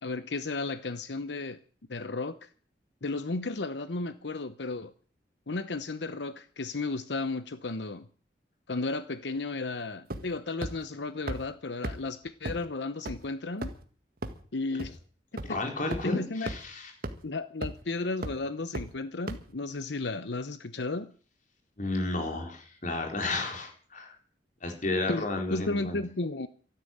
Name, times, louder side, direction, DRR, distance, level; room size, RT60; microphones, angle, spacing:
voice 1, 0.0-1.6 1.9-2.5 3.0-4.9 5.5-8.0 8.7-13.7 14.5-15.0 15.3-15.6 16.0-16.5 17.2-21.1 25.1-26.5, left 3 dB, 75° left, 12 dB, 0.9 m, -34 dB
sound 1, 10.1-10.4 10.6-10.7 11.3-11.4 11.8-11.9 12.5-12.6 13.1-13.2 13.6-13.8 14.2-14.3 14.8-14.9 15.4-15.5 15.9-16.0 16.5-16.6 17.0-17.1 17.6-17.8 18.2-18.3 18.7-18.8 19.3-19.4, right 1 dB, 55° right, 1.8 m, -33 dB
voice 2, 15.4-16.9 21.8-24.1 24.6-26.0, left 2 dB, 45° left, 3 dB, 4.2 m, -32 dB
13.5 x 11.5 x 8.8 m, 0.43 s
head